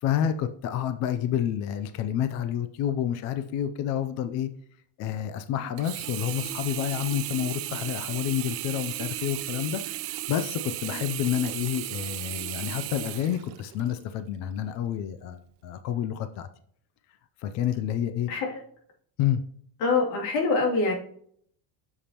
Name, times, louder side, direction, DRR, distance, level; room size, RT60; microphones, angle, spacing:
voice 1, 0.0-4.5 5.0-16.5 17.4-18.3 19.2-19.4, left 10 dB, 35° left, 10 dB, 0.4 m, -29 dB
Sink (filling or washing), 5.8-14.0 14.6-14.7, right 16 dB, 50° right, 0.5 m, -35 dB
voice 2, 18.3-18.6 19.8-20.9, left 3 dB, 80° left, 0 dB, 2.7 m, -24 dB
8.3 x 7.2 x 2.9 m, 0.63 s
cardioid pair, 165°, 48 cm